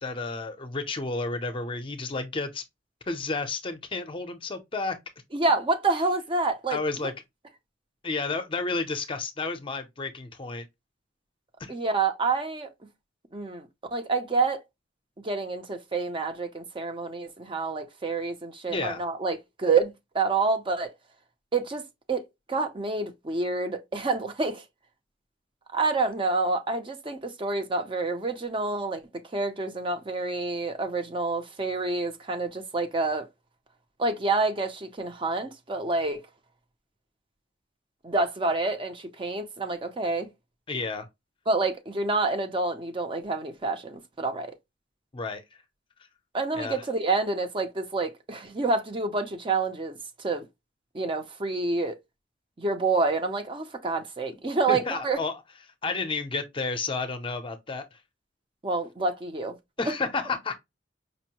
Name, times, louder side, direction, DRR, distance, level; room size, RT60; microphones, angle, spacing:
voice 1, 0.0-2.6 3.1-5.0 6.7-7.1 8.0-10.7 11.6-11.7 18.7-19.0 40.7-41.1 45.1-45.4 46.5-46.8 54.7-55.4 55.8-58.0 59.8-60.5, left 3 dB, 30° left, 0.6 m, -31 dB
voice 2, 5.3-7.1 11.7-12.7 13.3-14.6 15.2-20.9 21.5-21.8 22.1-24.6 25.7-29.0 29.3-33.3 34.0-36.2 38.0-40.3 41.5-44.5 46.3-50.5 50.9-52.0 52.6-55.2 58.6-59.6 59.8-59.9, right 3 dB, 30° right, 0.5 m, -28 dB
5.2 x 2.1 x 2.8 m
head